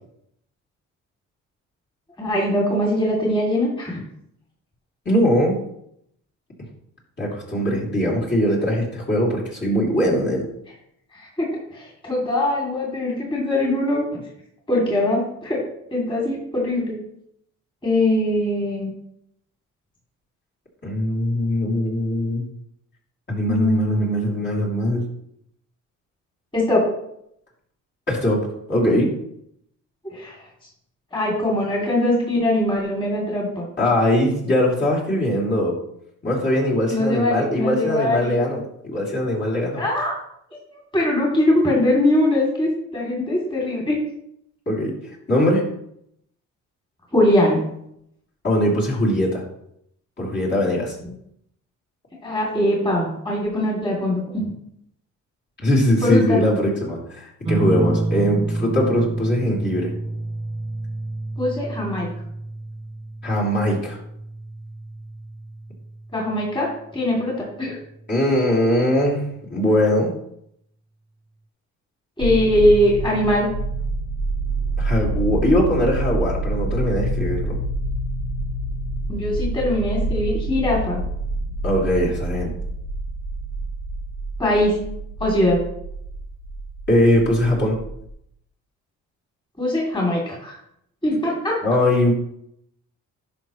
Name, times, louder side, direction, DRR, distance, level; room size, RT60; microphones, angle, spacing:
voice 1, 2.2-4.0 11.1-14.0 14.7-15.6 15.9-16.9 17.8-18.9 23.4-24.4 26.5-26.8 30.1-30.4 31.1-33.6 36.9-38.4 39.8-40.1 40.9-44.0 47.1-47.6 52.2-54.5 56.0-56.4 61.4-62.1 66.1-66.7 66.9-67.8 72.2-73.5 79.1-81.0 84.4-84.7 85.2-85.6 89.6-90.6 91.0-91.6, left 1 dB, 15° left, -3 dB, 2.7 m, -21 dB
voice 2, 5.0-5.6 7.2-10.5 20.8-22.4 23.3-25.0 28.1-29.1 33.8-35.8 36.2-39.8 44.7-45.0 45.3-45.6 48.4-49.4 50.2-50.9 55.6-59.9 63.2-64.0 68.1-69.2 69.5-70.1 74.8-77.5 81.6-82.5 86.9-87.8 91.6-92.1, left 1 dB, 35° left, -5 dB, 3.0 m, -21 dB
sound 1, 57.5-66.5 68.0-68.5, right 2 dB, 20° right, 0.5 m, -28 dB
sound 2, 72.2-88.1, right 2 dB, 65° left, 1.2 m, -27 dB
11.0 x 5.7 x 3.1 m, 0.75 s
cardioid pair, 90°, 30 cm